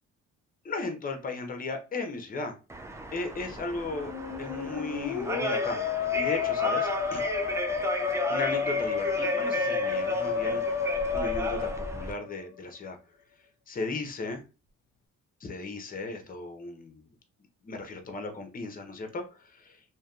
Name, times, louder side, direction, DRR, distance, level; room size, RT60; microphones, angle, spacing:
voice 1, 0.6-2.6 3.1-4.1 4.4-5.8 6.1-7.3 8.3-10.9 11.1-13.0 13.7-14.4 15.4-17.0 17.6-19.8, left 3 dB, 30° left, 5 dB, 0.6 m, -36 dB
sound 1, 2.7-12.1, right 2 dB, 10° right, 0.3 m, -35 dB
Musical instrument, 3.8-12.6, left 6 dB, 75° left, 0.5 m, -30 dB
2.7 x 2.1 x 2.3 m, 0.32 s
cardioid pair, 90°, 30 cm